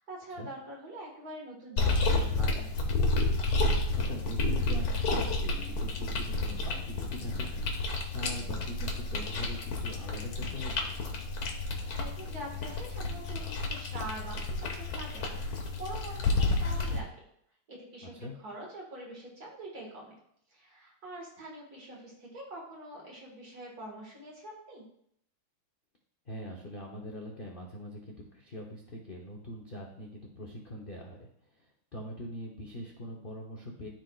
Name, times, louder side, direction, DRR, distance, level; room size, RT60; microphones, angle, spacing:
voice 1, 0.0-2.7 11.9-17.1 17.7-20.2 20.5-24.8, right 1 dB, 50° right, -2 dB, 2.1 m, -44 dB
sound 1, 1.8-17.0, left 2 dB, 90° left, 1.9 m, -31 dB
voice 2, 3.9-4.9 5.1-7.7 8.0-10.9 18.0-18.3 26.3-31.3 31.6-31.7 31.9-33.9, equal, 55° left, -1 dB, 0.6 m, -42 dB
13.0 x 4.5 x 2.4 m, 0.69 s
omnidirectional pair, 2.3 m